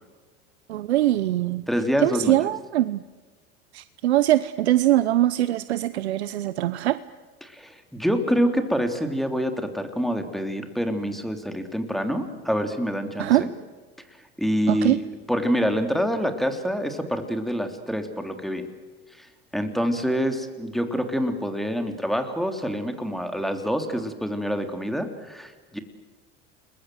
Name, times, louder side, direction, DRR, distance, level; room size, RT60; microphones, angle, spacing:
voice 1, 0.7-1.6 2.0-3.0 3.7-7.0 13.2-13.5 14.7-15.0, right 14 dB, 90° right, 15 dB, 0.7 m, -22 dB
voice 2, 1.7-2.4 7.4-13.5 14.4-15.0 15.3-18.7 19.2-19.3 19.5-25.8, equal, ahead, 6 dB, 3.3 m, -26 dB
30.0 x 21.0 x 7.9 m, 1.3 s
hypercardioid pair, 85°, 32 cm